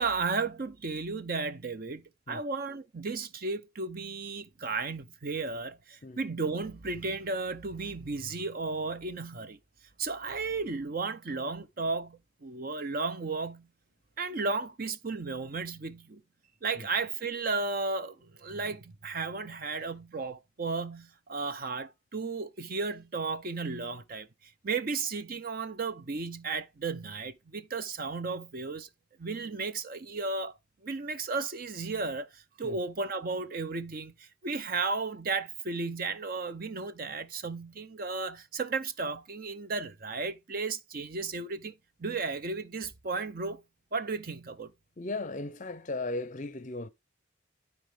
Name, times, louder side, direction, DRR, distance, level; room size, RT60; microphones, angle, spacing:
voice 1, 0.0-9.6 10.0-13.7 14.2-16.2 16.6-24.3 24.6-28.9 29.2-30.5 30.8-41.7 42.0-43.6 43.9-44.7, right 4 dB, 45° right, 0.7 m, -34 dB
voice 2, 45.0-46.9, left 2 dB, 40° left, 0.6 m, -36 dB
12.5 x 4.5 x 3.3 m
head